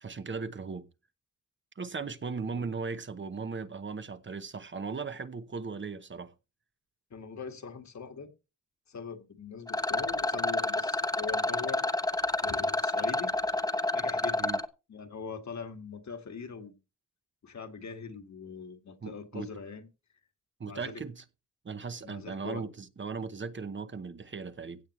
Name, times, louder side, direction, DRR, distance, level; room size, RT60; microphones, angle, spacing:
voice 1, 0.0-0.9 1.8-6.3 14.4-14.6 19.0-19.5 20.6-21.2 21.6-24.8, right 4 dB, 40° right, 0.9 m, -37 dB
voice 2, 7.1-8.3 8.9-11.8 12.4-13.3 13.9-14.5 14.9-16.8 17.4-19.9 20.6-21.0 22.0-22.7, left 5 dB, 65° left, 2.0 m, -42 dB
Rattle, 9.7-14.6, left 2 dB, 10° left, 1.0 m, -29 dB
16.5 x 8.5 x 3.2 m
wide cardioid pair, 155°, 31 cm